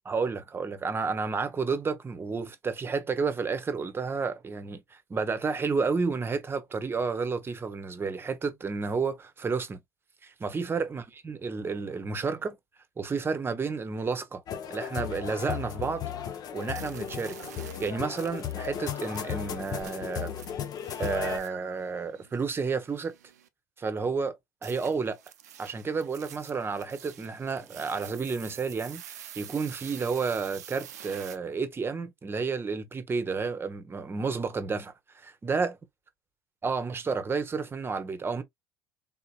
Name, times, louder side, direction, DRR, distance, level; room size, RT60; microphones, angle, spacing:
voice 1, 0.1-4.8 5.1-9.8 10.2-12.6 13.0-14.4 14.7-16.0 16.5-17.4 17.8-20.3 21.0-23.1 23.8-24.3 24.6-25.2 25.6-35.7 36.6-38.4, right 4 dB, 25° right, 1.0 m, -31 dB
sound 1, 14.5-21.4, left 9 dB, 50° left, 0.7 m, -35 dB
sound 2, 16.6-23.5 24.6-31.4, right 10 dB, 90° right, 0.5 m, -47 dB
3.7 x 2.8 x 2.3 m
hypercardioid pair, 70°, 9 cm